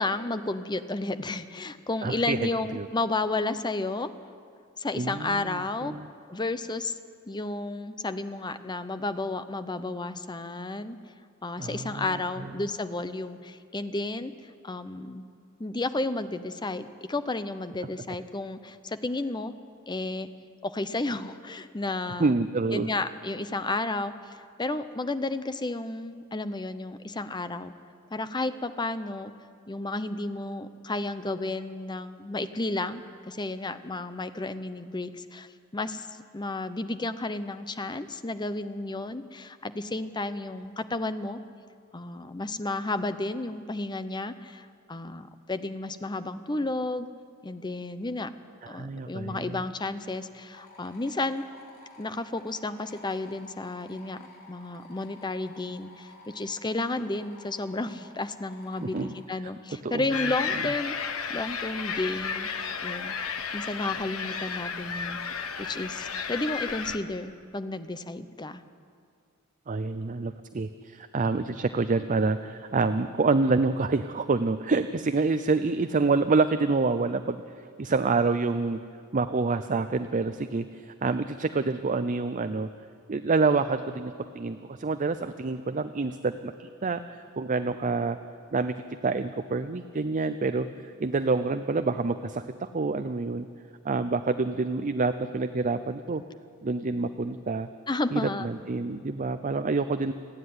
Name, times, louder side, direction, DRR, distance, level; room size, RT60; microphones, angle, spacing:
voice 1, 0.0-4.1 4.8-5.9 6.3-7.0 7.3-11.0 11.4-14.3 14.6-15.2 15.6-19.5 19.9-20.3 20.6-22.3 22.7-27.7 28.1-29.3 29.7-36.1 36.3-41.4 41.9-47.1 47.4-48.3 48.7-51.4 52.0-63.1 63.5-68.6 97.9-98.5, left 2 dB, 20° left, 11 dB, 0.8 m, -32 dB
voice 2, 2.0-2.9 4.9-6.1 11.6-12.2 22.2-22.9 48.6-49.6 58.8-59.1 59.8-60.0 69.7-78.8 79.1-82.7 83.1-88.2 88.5-88.7 89.0-90.7 91.0-93.5 93.8-96.2 96.6-97.7 98.1-100.1, right 3 dB, 40° right, 10 dB, 0.5 m, -27 dB
sound 1, 50.5-59.2, left 2 dB, 50° left, 3.8 m, -52 dB
sound 2, 60.1-67.0, left 6 dB, 90° left, 1.3 m, -33 dB
29.0 x 9.9 x 9.6 m, 2.3 s
head